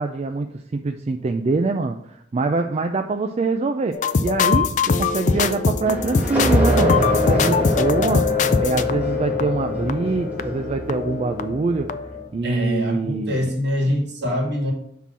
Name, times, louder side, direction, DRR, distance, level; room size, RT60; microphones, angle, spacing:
voice 1, 0.0-11.9 12.3-13.5, right 3 dB, 35° right, 5 dB, 0.3 m, -24 dB
sound 1, 3.9-11.6 11.9-12.2, left 5 dB, 40° left, 0.4 m, -22 dB
sound 2, 5.9-12.2, equal, 10° right, 1.4 m, -25 dB
voice 2, 12.4-14.7, equal, 65° right, -1 dB, 2.0 m, -24 dB
5.7 x 3.8 x 6.0 m, 0.71 s
head